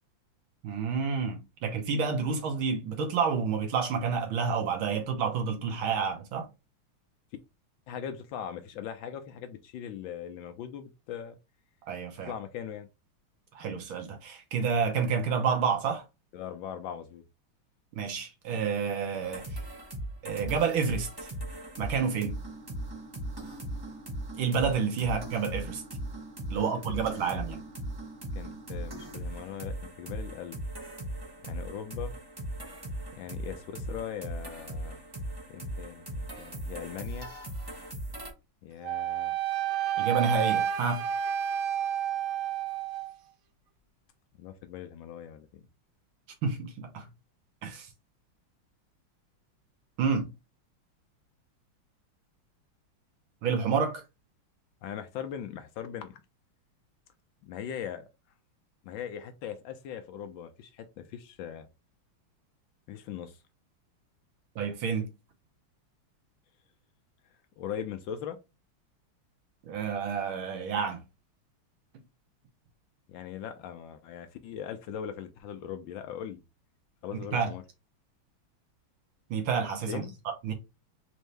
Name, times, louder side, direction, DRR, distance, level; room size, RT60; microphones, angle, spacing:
voice 1, 0.6-6.5 11.9-12.3 13.5-16.0 17.9-19.6 20.2-21.3 21.8-22.4 24.4-25.8 26.5-27.6 40.0-41.1 46.4-47.1 47.6-47.9 50.0-50.3 53.4-54.0 64.6-65.1 69.6-71.0 77.3-77.5 79.3-80.0 80.4-80.5, right 6 dB, 70° right, 1.7 m, -29 dB
voice 2, 7.9-11.4 12.2-12.9 16.3-17.2 26.5-26.8 28.4-30.6 31.4-32.1 33.1-35.0 35.5-37.3 38.6-39.3 44.4-45.7 54.8-56.2 57.4-58.1 58.8-61.7 62.9-63.4 67.6-68.4 73.1-76.4 77.0-77.6 79.9-80.1, left 9 dB, 75° left, 1.2 m, -40 dB
sound 1, 19.2-38.3, right 1 dB, 25° right, 0.5 m, -39 dB
Wind instrument woodwind instrument, 38.8-43.1, right 10 dB, 90° right, 0.7 m, -30 dB
4.4 x 2.7 x 3.2 m
omnidirectional pair, 2.3 m